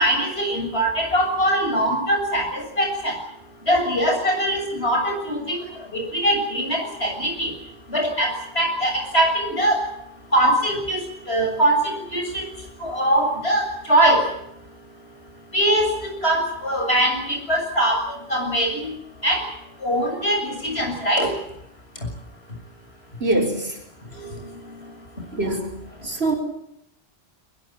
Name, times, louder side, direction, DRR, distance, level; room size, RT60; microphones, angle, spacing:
voice 1, 0.0-3.1 3.7-5.6 5.9-7.5 7.9-8.3 8.6-9.8 10.3-11.8 12.1-12.5 12.8-14.2 15.5-15.9 16.2-18.0 18.3-18.9 19.2-19.4 19.8-21.3 25.4-25.5, right 1 dB, 80° left, 3 dB, 7.5 m, -21 dB
voice 2, 23.2-23.8 25.3-25.7 26.0-26.3, right 2 dB, 80° right, 1 dB, 5.8 m, -23 dB
23.0 x 20.5 x 9.0 m, 0.80 s
omnidirectional pair, 1.1 m